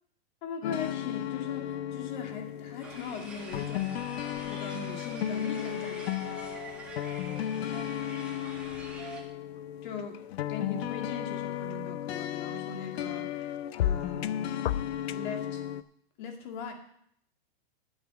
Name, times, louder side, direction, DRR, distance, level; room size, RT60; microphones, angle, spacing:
voice 1, 0.4-4.0 4.4-6.3 9.8-10.2 10.5-14.7 15.1-15.6 16.2-16.7, left 5 dB, 45° left, 3 dB, 2.2 m, -40 dB
sound 1, 0.6-15.8, left 11 dB, 75° left, 0.7 m, -34 dB
sound 2, 2.8-9.2, right 2 dB, 5° right, 1.7 m, -45 dB
8.8 x 8.2 x 6.2 m, 0.68 s
supercardioid pair, 160°, 31 cm